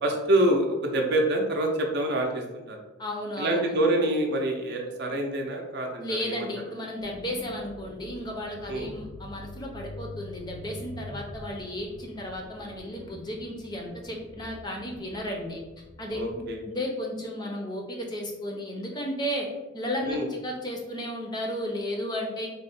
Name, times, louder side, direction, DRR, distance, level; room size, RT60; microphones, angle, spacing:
voice 1, 0.0-2.8 3.4-6.5 8.7-8.9 16.1-16.6 20.1-20.3, right 1 dB, 50° right, 2 dB, 0.5 m, -26 dB
voice 2, 3.0-3.8 6.0-15.6 16.0-19.5 19.7-22.5, equal, 20° left, 0 dB, 0.5 m, -34 dB
sound 1, 7.0-16.5, left 1 dB, 90° left, 0.9 m, -45 dB
3.5 x 2.1 x 4.1 m, 1.1 s
head